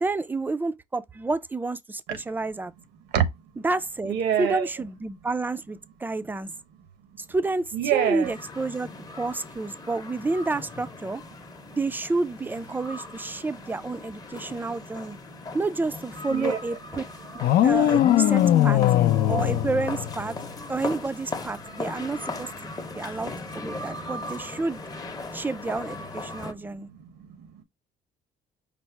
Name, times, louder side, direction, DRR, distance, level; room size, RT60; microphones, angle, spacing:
voice 1, 0.0-2.7 3.6-6.5 7.2-11.2 11.8-15.2 15.5-17.0 17.6-18.8 19.3-20.4 20.7-24.8 25.3-26.9, right 3 dB, 10° right, 0.4 m, -30 dB
voice 2, 4.0-4.7 7.7-8.3 11.7-11.8 15.3-15.4 16.3-16.6 22.7-23.2 25.3-25.4 26.3-27.6, right 9 dB, 85° right, 0.9 m, -28 dB
sound 1, 8.2-26.5, left 3 dB, 20° left, 0.8 m, -39 dB
sound 2, 17.4-20.5, left 12 dB, 65° left, 0.5 m, -20 dB
5.2 x 2.0 x 4.4 m
cardioid pair, 110°, 17 cm